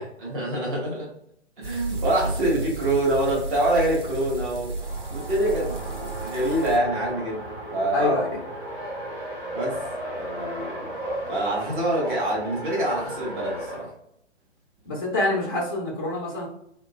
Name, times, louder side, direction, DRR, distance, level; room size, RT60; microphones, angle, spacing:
voice 1, 0.2-1.1 1.6-4.7 5.1-7.4 7.7-8.2 9.5-9.8 10.1-10.7 11.3-13.9, right 1 dB, 45° right, -4 dB, 1.4 m, -25 dB
sound 1, 1.6-6.8, right 3 dB, 90° right, 0.7 m, -33 dB
Race car auto racing, 4.6-13.9, right 1 dB, 5° right, 0.7 m, -35 dB
voice 2, 7.9-8.3 14.9-16.5, left 2 dB, 20° left, -2 dB, 0.3 m, -26 dB
2.9 x 2.1 x 2.2 m, 0.72 s
figure-of-eight pair, 125°, 35 cm